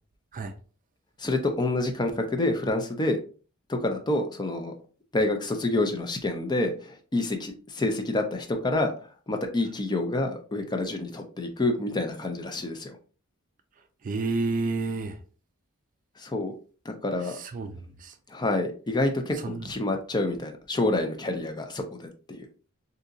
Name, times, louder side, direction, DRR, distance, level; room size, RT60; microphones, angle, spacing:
voice 1, 1.2-3.2 3.7-4.7 5.1-8.9 9.3-13.0 16.2-16.5 16.9-17.4 18.3-22.5, left 2 dB, 20° left, 0.5 m, -28 dB
voice 2, 14.0-15.2 17.3-18.1 19.4-19.7, right 3 dB, 40° right, 0.4 m, -30 dB
3.9 x 2.8 x 2.4 m
head